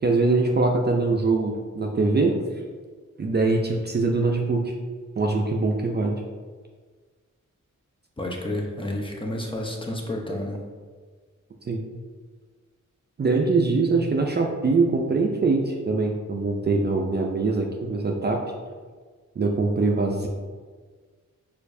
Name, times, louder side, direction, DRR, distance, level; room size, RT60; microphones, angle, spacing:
voice 1, 0.0-2.4 3.2-4.7 5.2-6.2 11.7-11.8 13.2-18.4 19.4-20.3, right 3 dB, 35° right, 1 dB, 0.4 m, -23 dB
voice 2, 8.2-10.6, left 1 dB, 15° left, -1 dB, 0.7 m, -30 dB
4.4 x 2.5 x 2.6 m, 1.5 s
cardioid pair, 45°, 31 cm